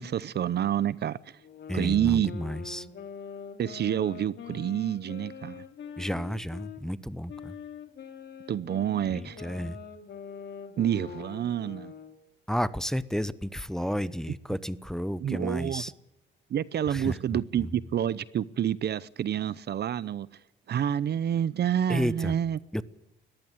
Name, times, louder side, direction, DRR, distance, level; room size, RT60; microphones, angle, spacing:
voice 1, 0.0-1.4 1.7-2.3 3.6-5.6 8.5-9.4 10.8-11.9 15.2-15.8 16.5-20.3 20.7-22.6, right 10 dB, 55° right, 0.8 m, -28 dB
sound 1, 1.4-6.8 7.3-12.2, left 7 dB, 60° left, 2.7 m, -44 dB
voice 2, 1.7-2.9 6.0-7.6 9.1-9.8 12.5-15.9 16.9-17.7 21.9-22.3 22.7-22.8, equal, ahead, 0.9 m, -32 dB
20.0 x 15.0 x 9.1 m
cardioid pair, 90°, 20 cm